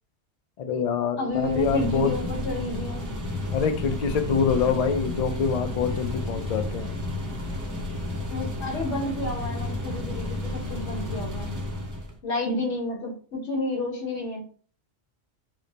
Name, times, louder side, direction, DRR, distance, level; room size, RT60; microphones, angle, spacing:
voice 1, 0.6-2.1 3.5-6.9, left 6 dB, 60° left, 7 dB, 0.4 m, -25 dB
voice 2, 1.2-3.1 8.3-11.5 12.2-14.4, left 2 dB, 85° left, 1 dB, 1.4 m, -30 dB
sound 1, 1.3-12.2, left 2 dB, 25° right, 0.4 m, -32 dB
3.1 x 2.0 x 3.9 m, 0.42 s
omnidirectional pair, 1.1 m